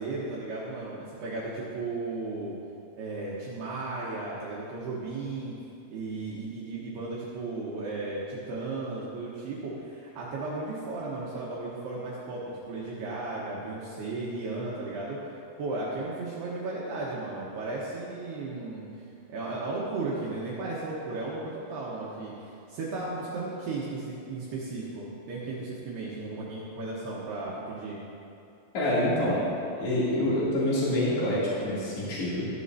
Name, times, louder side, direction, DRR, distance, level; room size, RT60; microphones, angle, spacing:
voice 1, 0.0-2.5 3.0-5.6 5.9-15.2 15.6-18.9 19.3-28.0, right 3 dB, 70° right, -6 dB, 2.5 m, -35 dB
voice 2, 28.7-29.4 29.8-32.5, left 1 dB, 40° left, -8 dB, 3.3 m, -26 dB
15.5 x 10.0 x 2.7 m, 2.6 s
omnidirectional pair, 5.9 m